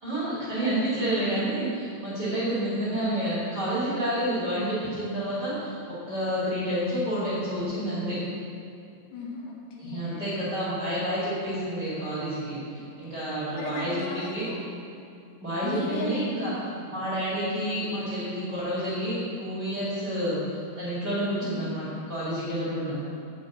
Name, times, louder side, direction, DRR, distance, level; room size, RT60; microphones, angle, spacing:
voice 1, 0.0-5.8 6.1-8.2 9.8-14.5 15.4-16.5 16.9-23.0, right 1 dB, 30° right, -10 dB, 2.4 m, -29 dB
voice 2, 9.1-10.2 13.5-14.7 15.6-16.5 21.4-21.6, left 2 dB, 75° left, -2 dB, 3.3 m, -36 dB
8.1 x 5.6 x 7.9 m, 2.5 s
omnidirectional pair, 4.9 m